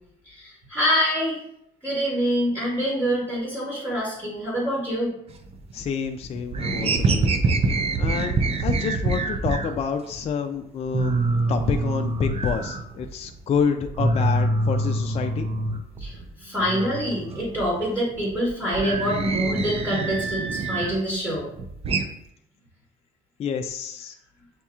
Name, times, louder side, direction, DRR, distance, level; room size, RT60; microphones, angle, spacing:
voice 1, 0.3-1.4 1.8-5.1 16.0-21.4, equal, 10° right, -7 dB, 1.9 m, -25 dB
sound 1, 5.3-6.0 6.3-9.8 10.2-10.3 10.6-10.7 10.9-13.4 13.7-16.3 16.6-21.0 21.4-22.1, right 3 dB, 35° right, 0.5 m, -25 dB
voice 2, 5.7-7.3 7.7-11.2 11.5-15.5 23.4-24.2, left 6 dB, 40° left, 5 dB, 0.3 m, -28 dB
7.7 x 2.8 x 2.4 m, 0.76 s
cardioid pair, 110°, 17 cm